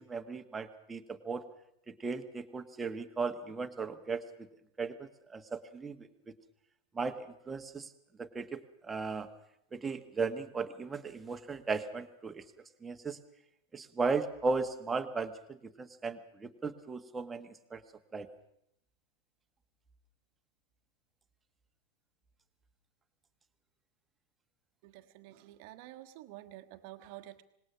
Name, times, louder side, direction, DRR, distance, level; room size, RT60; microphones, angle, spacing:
voice 1, 0.0-1.4 1.9-4.2 4.8-6.1 6.9-7.9 8.2-9.3 9.7-12.5 12.8-13.2 13.7-17.8 18.1-18.3, right 4 dB, 15° right, 7 dB, 1.5 m, -36 dB
voice 2, 24.8-27.4, right 15 dB, 45° right, 7 dB, 1.3 m, -50 dB
25.5 x 20.0 x 6.1 m, 0.77 s
figure-of-eight pair, 90°, 0 cm